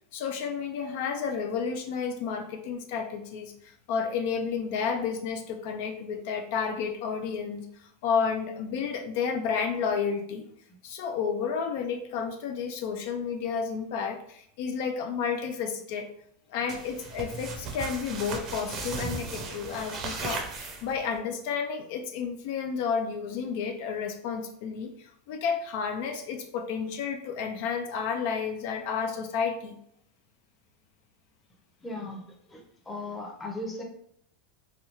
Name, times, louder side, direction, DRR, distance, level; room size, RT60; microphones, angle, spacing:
voice 1, 0.1-10.4 10.8-16.1 16.5-29.8, left 6 dB, 65° left, 5 dB, 0.3 m, -31 dB
sound 1, 16.7-21.2, right 4 dB, 35° right, 0.6 m, -36 dB
voice 2, 19.9-20.3 31.8-32.2 32.5-33.8, left 2 dB, 10° left, 0 dB, 0.7 m, -38 dB
3.2 x 2.3 x 2.9 m, 0.69 s
supercardioid pair, 140°, 0 cm